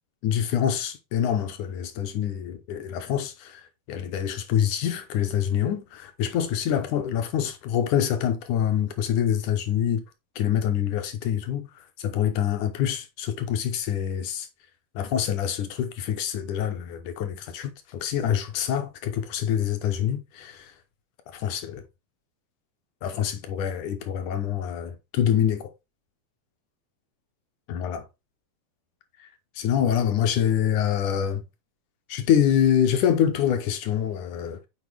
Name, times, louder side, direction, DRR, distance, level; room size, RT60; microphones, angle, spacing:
voice 1, 0.2-3.6 3.9-10.0 10.4-14.5 15.0-20.7 21.3-21.8 23.0-25.7 27.7-28.0 29.2-29.3 29.6-31.4 32.1-34.6, left 9 dB, 75° left, 1.8 m, -26 dB
8.4 x 4.7 x 3.4 m
omnidirectional pair, 4.5 m